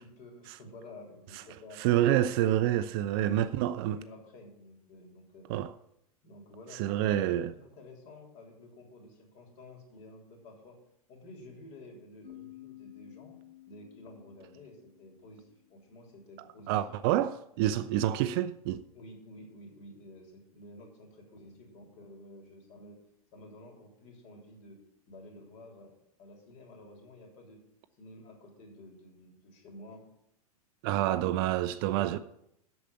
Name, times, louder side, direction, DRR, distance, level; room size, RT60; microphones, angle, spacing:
voice 1, 0.0-2.3 3.1-5.5 6.2-10.8 11.1-13.3 13.7-17.0 17.9-18.1 18.9-23.0 23.3-24.8 25.1-25.9 26.2-27.6 28.0-30.0 30.8-31.1 31.9-32.2, left 1 dB, 40° left, 3.5 m, -51 dB
voice 2, 1.8-4.0 5.5-5.7 6.7-7.5 16.7-18.8 30.8-32.2, right 12 dB, 40° right, 0.5 m, -27 dB
sound 1, 12.2-15.8, left 15 dB, 75° left, 3.6 m, -53 dB
8.3 x 7.1 x 8.4 m
figure-of-eight pair, 95°, 20 cm